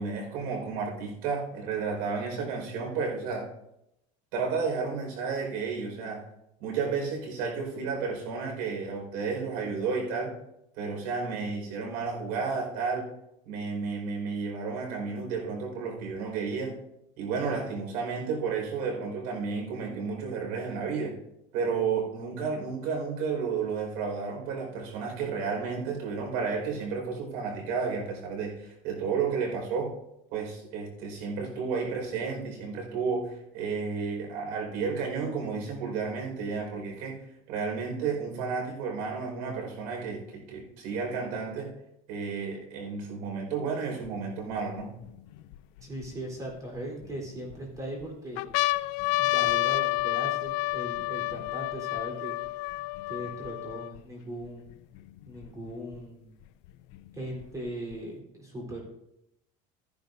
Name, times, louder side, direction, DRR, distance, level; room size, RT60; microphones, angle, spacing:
voice 1, 0.0-3.4 4.3-6.2 6.6-10.3 10.8-13.1 13.4-16.7 17.2-21.1 21.5-29.9 30.3-37.2 37.5-41.7 42.1-44.9, right 5 dB, 80° right, 1 dB, 4.9 m, -32 dB
sound 1, 44.1-44.2 44.8-46.1 46.8-47.6 48.0-48.1 48.4-54.0 54.7-54.8 55.0-56.0 56.9-58.0, left 21 dB, 80° left, 0.4 m, -30 dB
voice 2, 45.8-48.5 49.2-52.4 53.1-54.7 55.3-56.3 57.1-58.8, right 1 dB, 20° right, -1 dB, 3.7 m, -39 dB
15.0 x 10.5 x 2.6 m, 0.84 s
cardioid pair, 145°, 17 cm